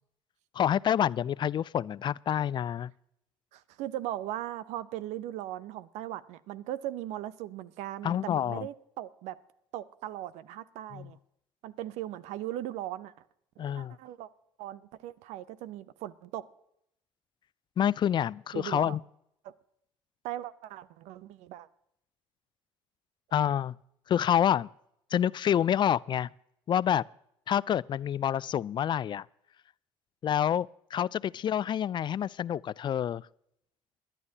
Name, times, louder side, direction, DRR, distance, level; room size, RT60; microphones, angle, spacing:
voice 1, 0.5-2.9 8.0-8.7 10.9-11.1 13.6-14.0 17.8-19.0 23.3-23.7 24.1-24.7 25.1-26.3 26.7-27.0 27.5-29.3 30.2-33.2, left 9 dB, 40° left, 0.3 m, -28 dB
voice 2, 3.5-9.4 9.7-11.2 11.6-13.1 13.6-14.3 14.6-16.4 18.5-19.0 19.4-19.5 20.2-21.7, right 13 dB, 75° right, 0.7 m, -38 dB
21.5 x 10.5 x 2.8 m
hypercardioid pair, 65°, 12 cm